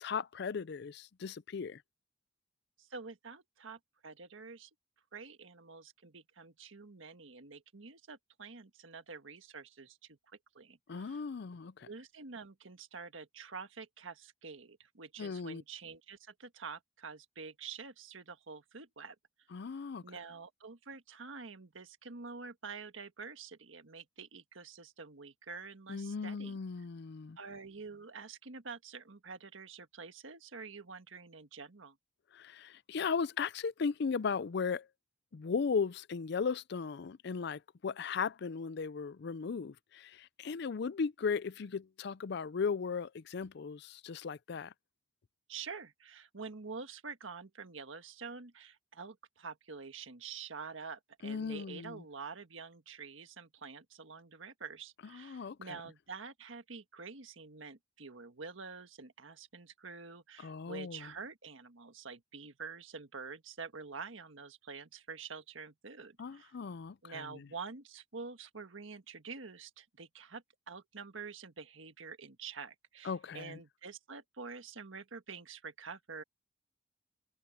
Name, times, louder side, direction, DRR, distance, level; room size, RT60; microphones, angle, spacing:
voice 1, 0.0-1.8 10.9-11.9 15.2-15.6 19.5-20.0 25.9-27.4 32.3-34.9 35.3-44.7 51.2-52.0 55.1-55.8 60.4-61.1 66.2-67.2 73.0-73.6, left 5 dB, 60° left, 0.4 m, -37 dB
voice 2, 2.8-4.7 5.1-11.2 11.8-19.1 20.0-26.6 27.4-32.0 45.5-66.6 67.0-76.2, right 5 dB, 90° right, 1.6 m, -47 dB
head